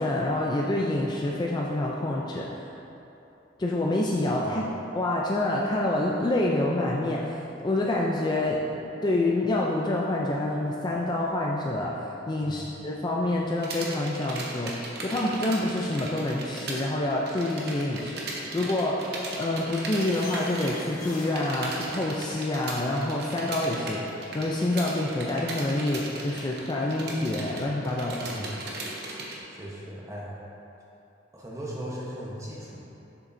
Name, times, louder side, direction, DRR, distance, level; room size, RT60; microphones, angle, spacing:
voice 1, 0.0-2.6 3.6-4.6 4.9-8.7 9.0-28.3, left 1 dB, 25° left, -3 dB, 0.4 m, -27 dB
sound 1, 13.6-16.8 17.1-29.4, right 2 dB, 60° right, 0.9 m, -37 dB
sound 2, 19.9-22.9, left 2 dB, 45° left, 1.2 m, -44 dB
voice 2, 29.5-30.4 31.3-32.8, equal, 15° right, -5 dB, 1.0 m, -38 dB
7.3 x 6.4 x 2.6 m, 2.9 s
head